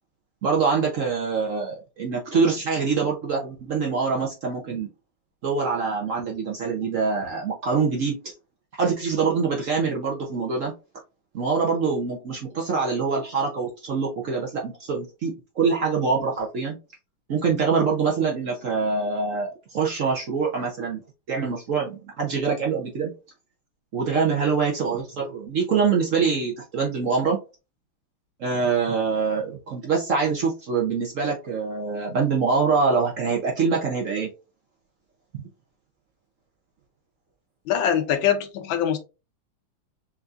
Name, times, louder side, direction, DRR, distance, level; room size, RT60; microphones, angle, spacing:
voice 1, 0.4-4.9 5.4-8.3 8.7-10.7 11.3-16.8 17.3-21.0 21.3-23.1 23.9-27.4 28.4-34.3 35.3-35.5, right 5 dB, 65° right, 0.7 m, -24 dB
voice 2, 37.7-39.0, left 9 dB, 70° left, 1.3 m, -23 dB
5.7 x 2.7 x 2.4 m
omnidirectional pair, 2.3 m